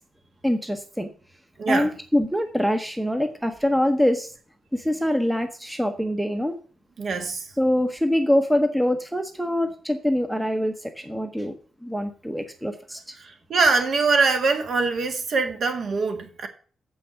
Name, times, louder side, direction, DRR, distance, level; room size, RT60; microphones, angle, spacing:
voice 1, 0.4-1.1 1.7-4.3 4.7-6.6 7.6-11.6 11.8-13.0, left 1 dB, 5° right, 0.9 m, -24 dB
voice 2, 1.6-1.9 7.0-7.5 13.2-16.5, right 4 dB, 50° right, 1.7 m, -23 dB
7.7 x 5.9 x 6.9 m
cardioid pair, 140°, 0 cm